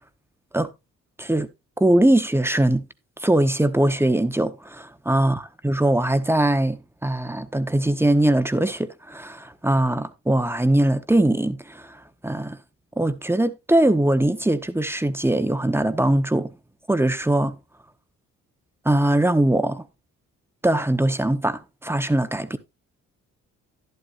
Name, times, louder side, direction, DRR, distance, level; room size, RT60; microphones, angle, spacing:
voice 1, 1.8-2.8 3.2-12.6 13.0-16.5 16.9-17.6 18.8-19.8 20.6-22.6, right 1 dB, 10° right, 0.9 m, -21 dB
11.5 x 11.0 x 2.5 m
cardioid pair, 90°, 30 cm